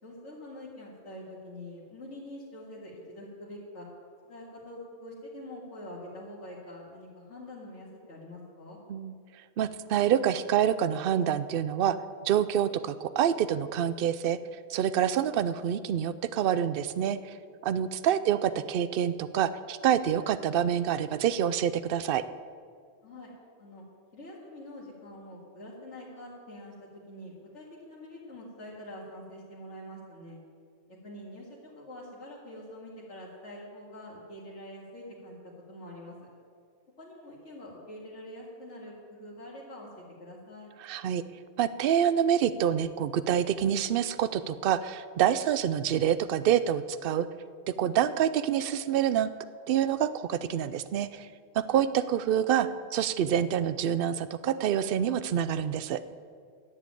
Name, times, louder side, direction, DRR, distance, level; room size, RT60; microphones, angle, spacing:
voice 1, 0.0-3.9 4.2-8.8 23.0-23.3 23.6-23.9 24.1-30.4 30.9-35.3 35.7-36.2 37.0-40.7, left 1 dB, 75° left, -6 dB, 2.4 m, -45 dB
voice 2, 9.6-12.0 12.2-14.4 14.7-17.3 17.6-22.2 40.8-41.2 41.6-47.3 47.7-49.3 49.7-51.3 51.5-56.0, right 9 dB, 60° right, 14 dB, 0.7 m, -27 dB
10.5 x 7.4 x 8.9 m, 2.1 s
omnidirectional pair, 1.2 m